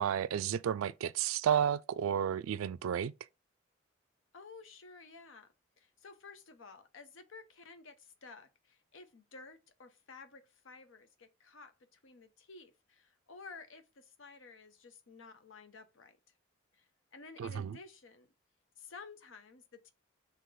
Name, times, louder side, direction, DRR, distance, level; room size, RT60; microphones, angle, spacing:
voice 1, 0.0-3.1 17.4-17.8, right 9 dB, 80° right, 0.3 m, -32 dB
voice 2, 4.3-16.2 16.7-18.3 18.8-19.9, left 4 dB, 70° left, 0.7 m, -53 dB
3.8 x 2.9 x 4.7 m
head